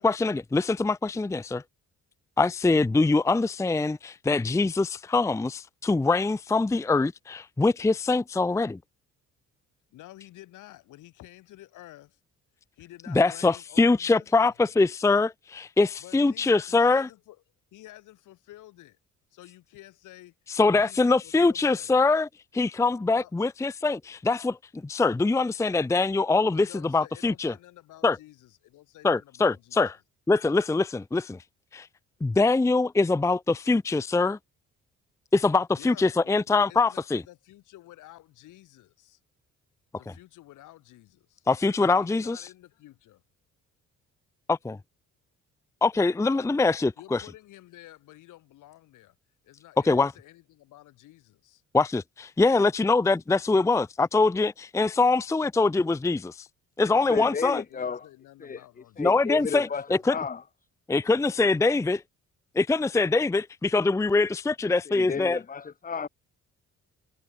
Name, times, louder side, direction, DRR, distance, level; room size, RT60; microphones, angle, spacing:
voice 1, 0.0-1.6 2.4-8.8 13.1-17.1 20.5-22.3 22.5-27.5 28.0-28.2 29.0-29.9 30.3-31.4 31.7-31.9 32.2-34.4 35.3-37.2 41.5-42.4 44.5-44.8 45.8-47.2 49.8-50.1 51.7-56.5 56.8-57.6 59.0-60.2 60.9-62.0 62.6-65.4, left 3 dB, 10° left, 0.5 m, -23 dB
voice 2, 9.9-12.2 12.7-14.6 16.0-17.4 17.7-19.0 19.3-20.3 20.7-22.1 23.1-23.3 26.5-29.8 35.8-39.2 40.0-41.4 42.0-43.2 46.3-46.5 46.8-49.2 49.4-51.6 57.0-59.5 59.9-60.2, left 15 dB, 90° left, 4.4 m, -51 dB
voice 3, 57.0-58.1 58.4-58.6 59.0-60.4 64.9-66.1, left 6 dB, 30° left, 1.1 m, -33 dB
cardioid pair, 90°, 30 cm